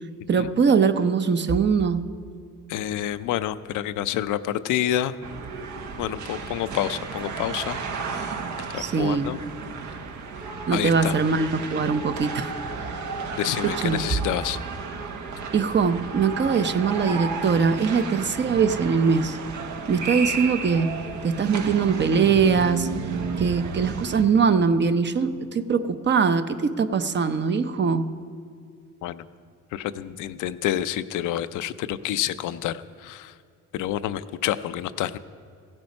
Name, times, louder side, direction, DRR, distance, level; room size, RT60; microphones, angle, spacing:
voice 1, 0.3-2.1 8.8-9.3 10.7-12.5 13.6-14.1 15.5-19.4 19.9-22.9 23.4-28.1, right 5 dB, 35° right, 10 dB, 0.7 m, -22 dB
voice 2, 2.7-5.1 6.0-7.8 8.1-8.3 8.7-9.4 10.7-11.1 13.3-14.6 29.0-29.2 29.7-33.3 33.7-35.2, left 12 dB, 85° left, 12 dB, 0.5 m, -28 dB
sound 1, 5.2-24.2, right 4 dB, 75° right, 1.1 m, -33 dB
16.0 x 8.9 x 5.3 m, 2.3 s
cardioid pair, 90°, 30 cm